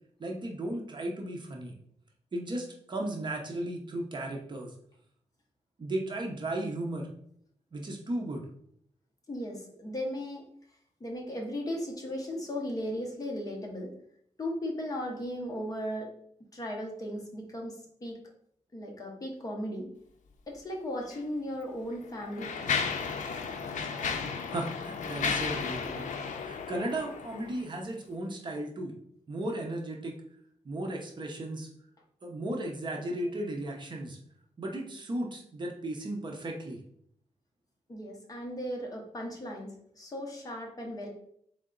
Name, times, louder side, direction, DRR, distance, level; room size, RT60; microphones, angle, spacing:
voice 1, 0.2-1.8 2.3-4.7 5.8-7.1 7.7-8.4 24.5-26.0 26.3-28.9 29.3-30.1 30.6-31.7 32.2-34.2 34.6-36.8, right 1 dB, 35° right, 1 dB, 0.7 m, -35 dB
voice 2, 9.3-10.5 11.0-13.9 14.4-16.1 16.5-18.2 18.7-19.9 20.5-22.7 33.0-33.3 37.9-41.1, equal, 30° left, 0 dB, 0.8 m, -36 dB
Mechanisms, 21.0-21.2 21.9-27.6, left 5 dB, 80° left, 0.5 m, -34 dB
3.8 x 3.3 x 3.8 m, 0.67 s
wide cardioid pair, 180°, 13 cm